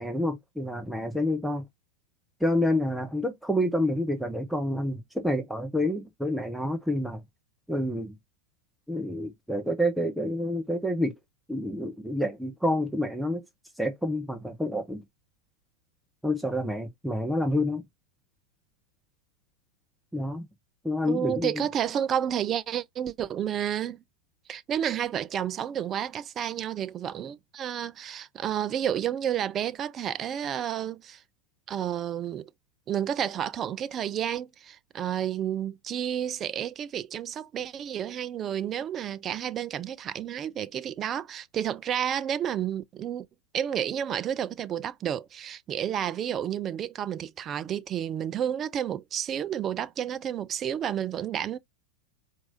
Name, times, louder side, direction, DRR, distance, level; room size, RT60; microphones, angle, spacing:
voice 1, 0.0-1.6 2.4-7.2 7.7-8.2 8.9-11.1 11.5-13.4 13.8-15.0 16.2-17.8 20.1-20.5 20.8-21.6, left 1 dB, ahead, 0.7 m, -28 dB
voice 2, 21.1-24.0 24.5-31.2 31.7-32.5 32.9-43.3 43.5-51.6, right 9 dB, 25° right, 0.4 m, -31 dB
4.5 x 2.6 x 2.8 m
figure-of-eight pair, 90°, 0 cm